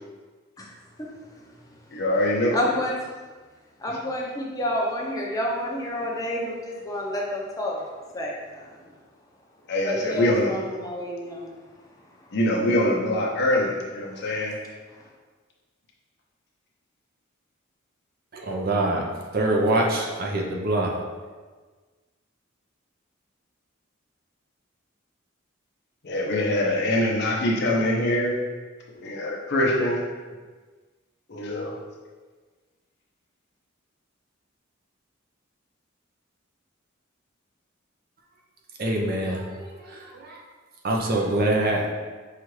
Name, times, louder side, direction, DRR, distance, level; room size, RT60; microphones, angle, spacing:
voice 1, 1.0-2.0 2.5-3.1 3.8-7.8 8.1-8.9 9.8-11.6 12.0-12.3 14.1-14.4 14.9-15.1, left 1 dB, 20° left, -3 dB, 0.7 m, -30 dB
voice 2, 1.9-2.6 9.7-10.5 12.3-14.6 26.0-28.3 28.9-30.0 31.3-31.8, left 1 dB, 55° left, -2 dB, 0.7 m, -24 dB
voice 3, 18.3-19.0 19.3-20.9 21.2-21.3 38.8-40.4 40.8-41.9, right 1 dB, 50° right, -1 dB, 0.6 m, -25 dB
5.7 x 2.5 x 3.1 m, 1.4 s
head